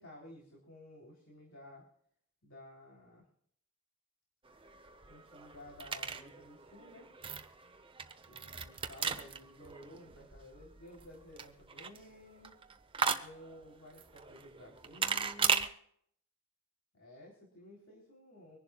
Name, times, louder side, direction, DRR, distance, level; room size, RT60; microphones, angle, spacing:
voice 1, 0.0-1.9 2.4-3.3 5.1-7.1 8.3-12.6 13.1-15.7 16.9-18.6, left 1 dB, 65° left, -2 dB, 3.6 m, -54 dB
sound 1, 4.4-15.7, right 6 dB, 25° right, 0.9 m, -38 dB
25.0 x 11.0 x 2.4 m, 0.66 s
head